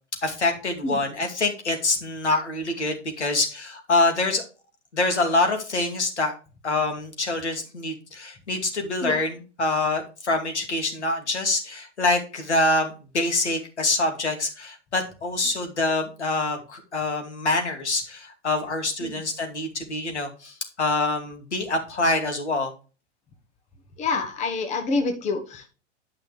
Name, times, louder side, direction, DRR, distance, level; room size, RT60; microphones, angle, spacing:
voice 1, 0.2-4.4 4.9-6.3 6.6-22.7, left 2 dB, 75° left, 4 dB, 2.5 m, -25 dB
voice 2, 24.0-25.7, left 3 dB, 20° left, 6 dB, 1.2 m, -27 dB
11.5 x 5.6 x 3.3 m, 0.34 s
figure-of-eight pair, 110°, 35 cm